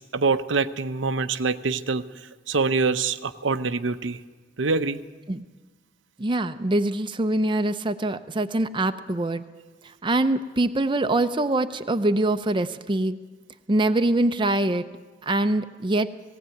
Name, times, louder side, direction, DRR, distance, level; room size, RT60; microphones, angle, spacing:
voice 1, 0.0-2.0 2.5-4.2 4.6-5.0, right 4 dB, 90° right, 10 dB, 0.8 m, -25 dB
voice 2, 6.2-9.4 10.0-13.2 13.7-14.8 15.2-16.1, right 2 dB, 25° right, 9 dB, 0.6 m, -24 dB
18.5 x 16.5 x 9.2 m, 1.3 s
head